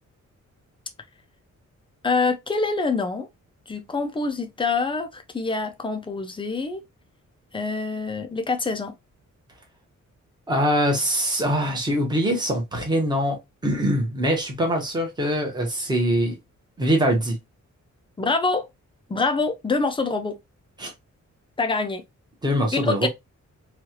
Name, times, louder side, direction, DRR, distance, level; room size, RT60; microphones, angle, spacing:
voice 1, 2.0-3.3 3.7-6.8 7.5-8.9 18.2-18.7 19.1-20.4 21.6-22.0 22.7-23.1, left 3 dB, 15° left, 0.4 m, -25 dB
voice 2, 10.5-16.4 16.8-17.4 20.8-20.9 22.4-23.1, equal, 15° right, 1.0 m, -23 dB
3.1 x 2.4 x 2.8 m
wide cardioid pair, 170°, 30 cm